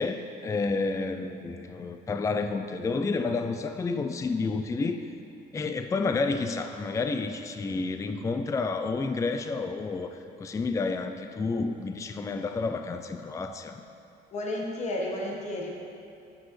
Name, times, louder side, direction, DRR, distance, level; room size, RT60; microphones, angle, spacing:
voice 1, 0.0-5.1 5.5-13.8, left 3 dB, 20° left, 7 dB, 0.4 m, -30 dB
voice 2, 14.3-15.7, left 1 dB, 40° left, -2 dB, 1.5 m, -32 dB
15.5 x 6.0 x 3.2 m, 2.7 s
cardioid pair, 110°, 17 cm